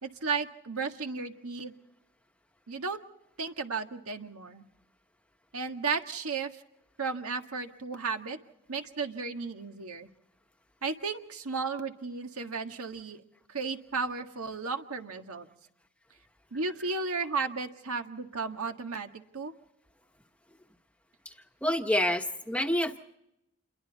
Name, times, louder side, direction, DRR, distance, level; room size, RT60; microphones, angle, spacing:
voice 1, 0.0-1.7 2.7-3.0 3.4-4.7 5.5-6.6 7.0-8.4 8.7-10.1 10.8-13.2 13.5-15.5 16.5-19.5, right 4 dB, 80° right, 5 dB, 1.7 m, -34 dB
voice 2, 21.6-23.0, left 1 dB, 5° left, 4 dB, 1.1 m, -28 dB
28.5 x 22.5 x 4.1 m, 0.84 s
head